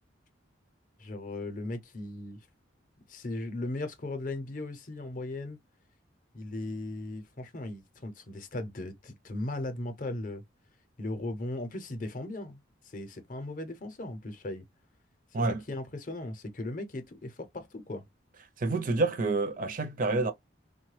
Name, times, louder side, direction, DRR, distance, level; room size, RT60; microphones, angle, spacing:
voice 1, 1.0-2.4 3.1-5.6 6.3-10.4 11.0-14.6 15.7-18.0, left 2 dB, 40° left, 0.6 m, -37 dB
voice 2, 18.6-20.3, right 3 dB, 45° right, 0.4 m, -28 dB
3.1 x 2.1 x 3.1 m
head